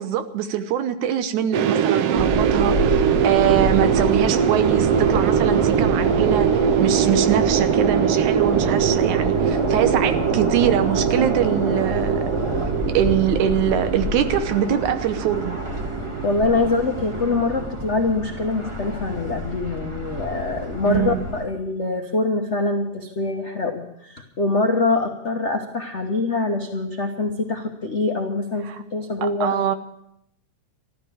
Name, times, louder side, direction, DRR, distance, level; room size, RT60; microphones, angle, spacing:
voice 1, 0.0-12.2 12.9-15.6 20.9-21.2 28.7-28.8 29.2-29.8, right 9 dB, 90° right, 10 dB, 2.4 m, -23 dB
sound 1, 1.5-17.7, right 8 dB, 70° right, 1.5 m, -22 dB
sound 2, 2.1-21.4, equal, 25° right, 0.6 m, -28 dB
voice 2, 16.2-29.6, left 3 dB, 75° left, 2 dB, 0.6 m, -24 dB
14.0 x 13.0 x 6.9 m, 0.77 s
omnidirectional pair, 3.3 m